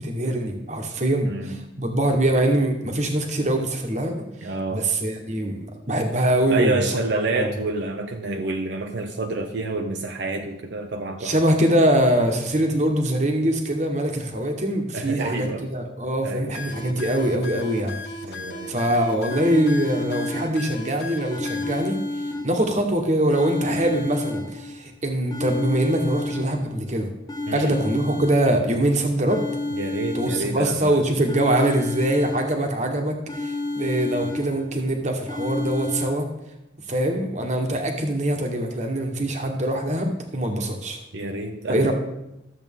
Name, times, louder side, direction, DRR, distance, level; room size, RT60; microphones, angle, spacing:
voice 1, 0.0-6.8 7.3-7.5 11.2-18.0 18.7-22.0 22.4-27.1 27.5-29.4 30.1-36.3 36.9-41.0 41.7-41.9, right 1 dB, 40° right, 4 dB, 1.2 m, -23 dB
voice 2, 1.3-1.6 4.4-4.9 6.5-11.3 14.9-15.6 16.2-16.5 18.2-18.7 27.5-27.7 29.7-31.0 41.1-41.9, right 2 dB, 75° right, 4 dB, 0.7 m, -28 dB
sound 1, 16.5-21.8, left 2 dB, 60° left, 1.3 m, -36 dB
sound 2, 19.3-20.9 21.3-22.9 23.3-24.9 25.3-26.9 27.3-28.9 29.3-30.9 31.3-32.9 33.3-34.9 35.3-36.1, left 2 dB, 20° left, 0.7 m, -31 dB
12.5 x 7.5 x 3.6 m, 0.88 s
head